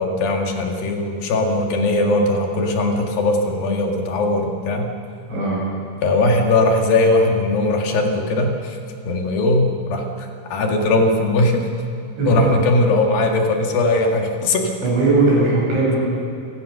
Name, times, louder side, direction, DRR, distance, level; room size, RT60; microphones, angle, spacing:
voice 1, 0.0-4.9 6.0-8.8 9.0-11.7 12.3-14.7, left 2 dB, 55° left, 2 dB, 3.4 m, -19 dB
voice 2, 5.3-5.6 12.2-12.5 14.8-16.0, right 3 dB, 65° right, -5 dB, 9.8 m, -18 dB
29.5 x 17.0 x 6.7 m, 2.7 s
omnidirectional pair, 5.5 m